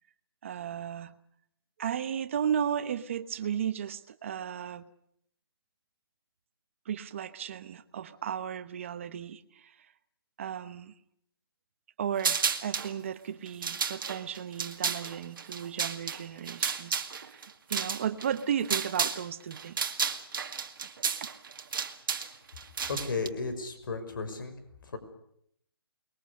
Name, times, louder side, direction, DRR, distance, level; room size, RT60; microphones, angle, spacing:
voice 1, 0.4-1.2 1.8-4.9 6.9-9.7 10.4-10.9 12.0-19.9 21.2-21.3, right 8 dB, 30° right, 12 dB, 1.1 m, -34 dB
sound 1, 12.2-12.9 13.5-19.2 19.5-23.3, right 6 dB, 55° right, 2.2 m, -32 dB
voice 2, 22.9-24.6 24.9-25.0, left 4 dB, 55° left, 9 dB, 5.9 m, -34 dB
28.0 x 22.0 x 6.6 m, 0.70 s
hypercardioid pair, 170°, 13 cm